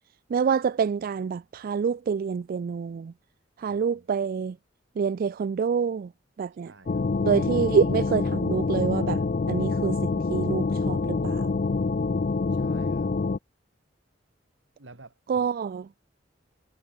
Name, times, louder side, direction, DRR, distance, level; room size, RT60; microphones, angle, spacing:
voice 1, 0.3-3.1 3.6-4.6 5.0-6.1 6.4-6.7 7.2-9.2 9.5-11.5 15.3-15.8, right 6 dB, 50° right, 0.3 m, -27 dB
voice 2, 3.7-4.1 6.7-7.1 12.5-13.1 14.8-15.5, right 3 dB, 90° right, 2.6 m, -51 dB
sound 1, 6.9-13.4, left 3 dB, 45° left, 0.5 m, -26 dB
head